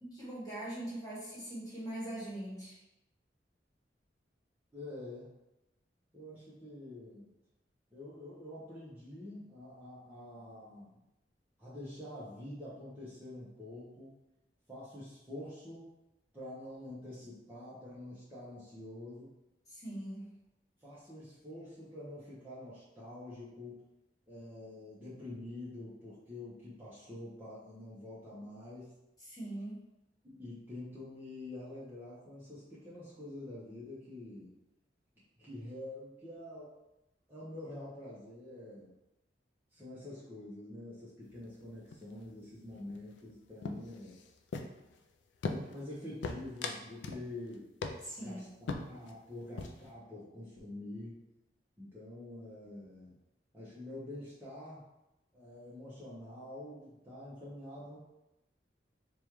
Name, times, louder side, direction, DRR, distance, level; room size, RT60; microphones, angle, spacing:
voice 1, 0.0-2.8 19.7-20.3 29.3-29.8 48.0-48.4, right 1 dB, 20° left, -8 dB, 1.5 m, -41 dB
voice 2, 4.7-5.3 6.1-7.3 7.9-11.0 11.6-14.2 14.7-15.9 16.3-19.3 20.8-23.8 24.3-28.9 30.2-34.5 35.4-36.7 37.3-38.9 39.7-44.2 45.5-47.6 48.2-51.2 51.8-53.1 53.5-54.8 55.3-58.0, left 1 dB, 10° right, -10 dB, 0.8 m, -46 dB
sound 1, 41.3-41.6 41.9-42.3 42.6-43.3 43.6-45.0 45.4-45.9 46.2-47.3 47.5-47.6 47.8-48.3 48.7-49.1 49.4-49.9, left 3 dB, 90° left, 0.4 m, -39 dB
4.9 x 2.4 x 3.1 m, 0.92 s
head